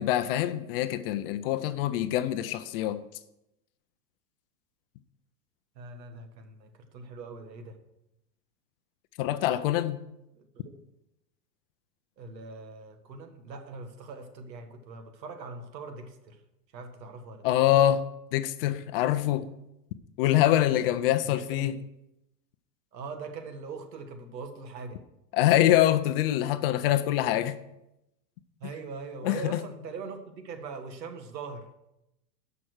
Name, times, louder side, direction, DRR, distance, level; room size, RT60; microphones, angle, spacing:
voice 1, 0.0-3.0 9.2-10.0 17.4-18.0 18.3-19.5 20.2-21.8 25.3-27.5 29.2-29.6, left 13 dB, 35° left, 0.5 m, -24 dB
voice 2, 5.8-7.8 10.4-10.6 12.2-16.4 16.7-17.5 21.3-21.8 22.9-25.0 28.6-31.7, right 4 dB, 80° right, 1.8 m, -41 dB
11.0 x 6.0 x 6.3 m
hypercardioid pair, 130°, 49 cm